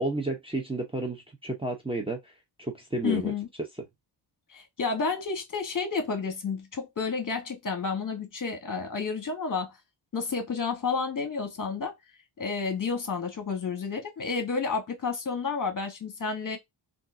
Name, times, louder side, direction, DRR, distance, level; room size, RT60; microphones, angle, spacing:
voice 1, 0.0-2.3 2.6-3.3, right 2 dB, 10° right, 0.7 m, -31 dB
voice 2, 3.0-3.5 4.5-9.7 10.1-11.9 12.4-16.6, left 5 dB, 40° left, 1.3 m, -30 dB
3.6 x 2.6 x 2.6 m
cardioid pair, 80°, 48 cm